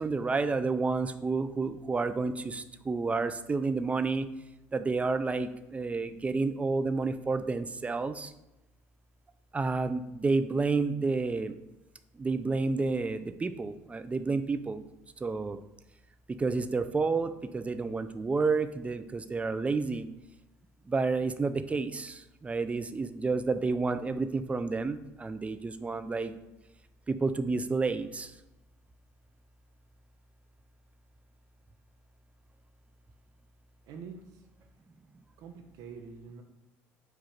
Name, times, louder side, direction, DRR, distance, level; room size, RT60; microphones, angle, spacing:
voice 1, 0.0-4.3 4.7-8.3 9.5-11.6 12.1-14.8 15.2-15.6 16.4-20.1 20.9-26.3 27.1-28.3, right 4 dB, 20° right, 10 dB, 0.3 m, -30 dB
voice 2, 33.8-34.4 35.4-36.4, right 5 dB, 65° right, 4 dB, 0.7 m, -46 dB
4.8 x 2.4 x 4.3 m, 0.97 s
supercardioid pair, 80°, 7 cm